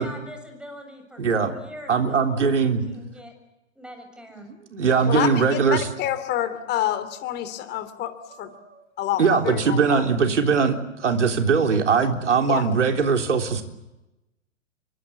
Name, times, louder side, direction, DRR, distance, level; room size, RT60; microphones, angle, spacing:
voice 1, 0.0-3.3 3.8-4.5, left 1 dB, ahead, 5 dB, 7.0 m, -43 dB
voice 2, 1.2-1.6 1.9-2.8 4.4-5.9 8.5-8.8 9.2-13.6, right 5 dB, 70° right, 5 dB, 3.7 m, -21 dB
voice 3, 5.1-8.5 9.0-10.0 12.5-12.7, left 12 dB, 25° left, 10 dB, 3.0 m, -28 dB
27.0 x 24.0 x 8.4 m, 0.95 s
figure-of-eight pair, 110°, 37 cm